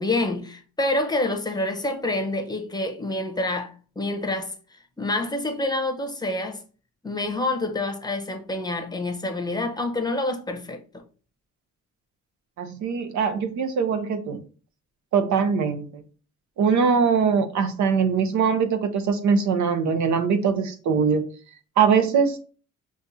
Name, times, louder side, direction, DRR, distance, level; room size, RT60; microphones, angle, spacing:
voice 1, 0.0-4.5 5.0-6.6 7.0-10.8, left 2 dB, 15° left, 0.8 m, -27 dB
voice 2, 12.6-14.4 15.1-16.0 16.6-21.2 21.8-22.4, right 6 dB, 70° right, 0.8 m, -22 dB
6.3 x 2.4 x 2.7 m
cardioid pair, 90°, 30 cm